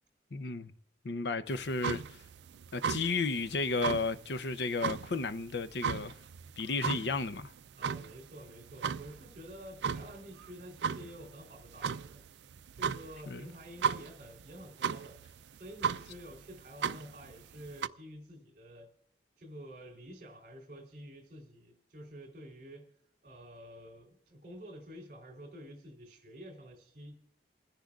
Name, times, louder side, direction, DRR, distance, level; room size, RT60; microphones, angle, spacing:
voice 1, 0.3-0.7 1.0-2.0 2.7-6.1 6.6-7.5 13.3-13.5, left 3 dB, 70° left, 0.6 m, -33 dB
sound 1, 1.5-17.9, right 6 dB, 75° right, 0.4 m, -37 dB
voice 2, 7.8-12.2 12.7-15.2 15.5-18.9 19.4-22.9 23.2-27.2, equal, 40° right, 3.3 m, -49 dB
28.0 x 10.5 x 2.4 m
head